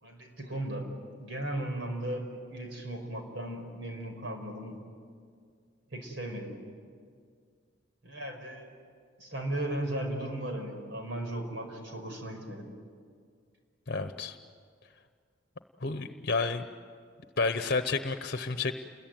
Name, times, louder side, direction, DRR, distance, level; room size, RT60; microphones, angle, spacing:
voice 1, 0.0-0.9 1.2-2.3 2.5-4.8 5.9-6.5 8.0-8.7 9.2-12.7, right 1 dB, 70° right, 3 dB, 5.2 m, -36 dB
voice 2, 13.9-14.4 15.8-16.7 17.4-18.7, left 4 dB, 55° left, 8 dB, 1.0 m, -30 dB
29.5 x 21.5 x 9.2 m, 2.1 s
head